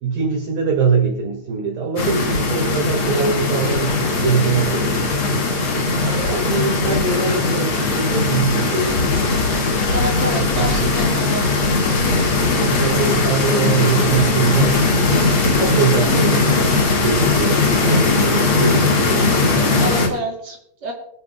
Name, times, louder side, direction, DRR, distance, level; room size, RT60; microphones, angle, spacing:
voice 1, 0.0-5.4 6.0-9.1 10.2-10.9 12.5-18.9 19.6-20.2, right 5 dB, 55° right, -1 dB, 3.3 m, -23 dB
sound 1, 2.0-20.1, left 3 dB, 55° left, 1.5 m, -19 dB
voice 2, 9.9-11.4 19.8-20.9, right 1 dB, 35° right, -3 dB, 4.5 m, -27 dB
25.5 x 9.7 x 2.3 m, 0.70 s
omnidirectional pair, 5.3 m